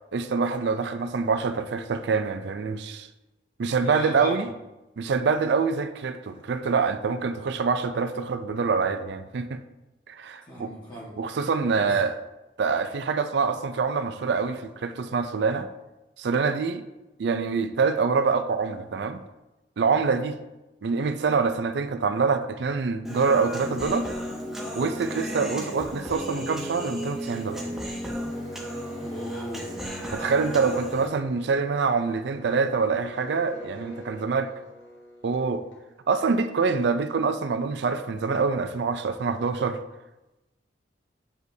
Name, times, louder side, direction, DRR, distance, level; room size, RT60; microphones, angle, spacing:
voice 1, 0.1-3.1 3.6-4.5 5.0-9.6 10.1-10.7 11.2-12.1 12.6-15.7 16.2-16.8 17.2-19.2 19.8-20.4 20.8-24.1 24.8-27.6 30.1-34.5 35.2-35.6 36.1-39.8, right 5 dB, 65° right, 9 dB, 0.4 m, -25 dB
voice 2, 3.8-4.5 10.4-11.2 11.7-12.0 29.0-29.7, equal, 25° left, -5 dB, 1.5 m, -38 dB
Human voice, 23.0-31.1, equal, ahead, 0.8 m, -34 dB
sound 1, 28.2-36.0, equal, 75° left, 1.6 m, -45 dB
7.8 x 5.1 x 2.7 m, 1.0 s
head